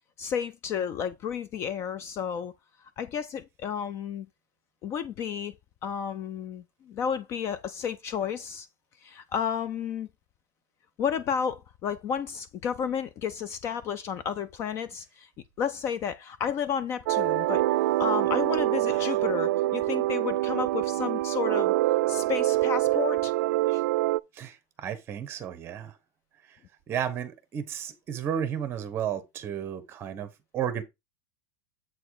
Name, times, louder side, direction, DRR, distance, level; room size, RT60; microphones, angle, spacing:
voice 1, 0.2-2.5 3.0-4.3 4.8-5.6 5.8-8.7 9.0-10.1 11.0-15.3 15.6-21.7 22.1-23.3 23.7-23.8, left 7 dB, 25° left, 0.4 m, -32 dB
sound 1, 17.1-24.2, right 17 dB, 80° right, 0.4 m, -25 dB
voice 2, 24.3-26.0 26.5-26.6 26.9-30.8, right 9 dB, 25° right, 1.1 m, -33 dB
8.0 x 4.1 x 4.8 m
supercardioid pair, 170°, 10 cm